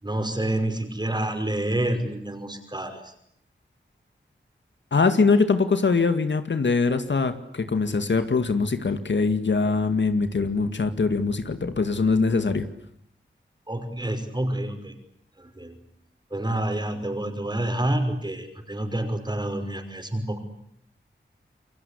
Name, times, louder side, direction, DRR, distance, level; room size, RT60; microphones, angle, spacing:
voice 1, 0.0-3.1 13.7-14.9 15.4-15.8 16.3-20.4, right 1 dB, 20° right, 7 dB, 5.8 m, -28 dB
voice 2, 4.9-12.7, left 4 dB, 65° left, 9 dB, 2.1 m, -22 dB
28.5 x 23.5 x 8.6 m, 0.73 s
wide cardioid pair, 95°, 20 cm